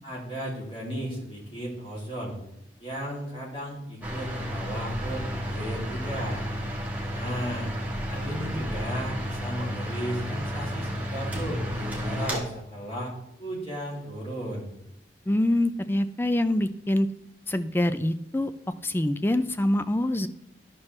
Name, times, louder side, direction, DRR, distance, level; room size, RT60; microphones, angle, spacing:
voice 1, 0.0-2.4 2.8-6.5 7.1-7.7 8.1-13.1 13.4-14.7, equal, 30° left, -3 dB, 2.6 m, -35 dB
sound 1, 4.0-12.4, equal, 10° right, 1.3 m, -32 dB
voice 2, 15.3-17.1 17.5-18.5 18.8-20.3, left 1 dB, 10° left, 12 dB, 0.3 m, -25 dB
12.0 x 6.0 x 3.2 m, 0.82 s
head